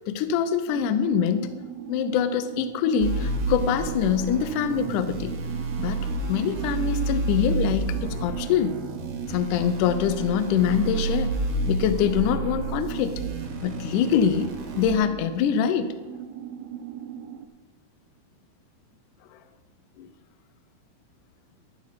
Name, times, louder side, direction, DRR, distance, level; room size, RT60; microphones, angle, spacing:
voice 1, 0.1-1.5 1.9-5.4 5.8-8.8 9.3-11.3 11.6-13.1 13.6-15.9 20.0-20.1, left 8 dB, 80° left, 11 dB, 1.9 m, -24 dB
sound 1, 0.7-17.5, right 10 dB, 90° right, 2.6 m, -38 dB
sound 2, 3.0-14.9, right 3 dB, 65° right, 2.8 m, -30 dB
12.5 x 7.4 x 5.8 m, 1.2 s
omnidirectional pair, 4.4 m